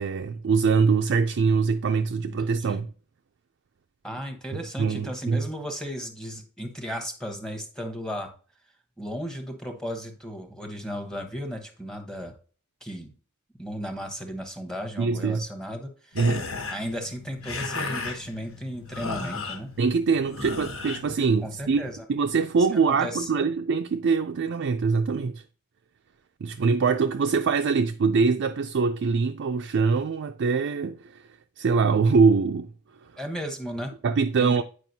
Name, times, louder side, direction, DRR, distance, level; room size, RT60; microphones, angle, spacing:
voice 1, 0.0-2.9 4.8-5.4 15.0-15.4 16.2-16.5 19.8-25.4 26.4-31.2 31.6-32.7 34.0-34.6, right 5 dB, 55° right, 0.4 m, -23 dB
voice 2, 4.0-8.3 9.0-12.3 12.8-13.1 13.6-16.3 16.7-19.7 21.4-22.1 22.7-23.5 33.2-33.9 34.4-34.6, equal, 5° left, 0.9 m, -35 dB
sound 1, 16.1-22.0, left 3 dB, 75° left, 1.5 m, -35 dB
9.1 x 4.9 x 2.7 m
head